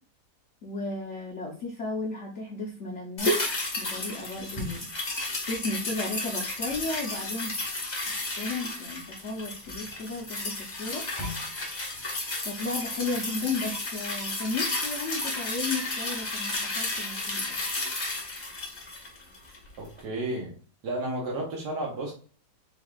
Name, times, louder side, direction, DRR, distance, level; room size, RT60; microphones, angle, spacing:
voice 1, 0.6-3.5 3.8-4.9 5.5-7.5 8.4-11.1 12.4-17.6, left 3 dB, 75° left, -3 dB, 0.6 m, -34 dB
sound 1, 3.2-19.7 20.0-20.1, left 2 dB, 30° left, 0.9 m, -32 dB
voice 2, 19.8-20.5 20.8-22.1, right 1 dB, 55° right, -2 dB, 1.4 m, -32 dB
5.1 x 3.5 x 2.4 m, 0.42 s
omnidirectional pair, 2.4 m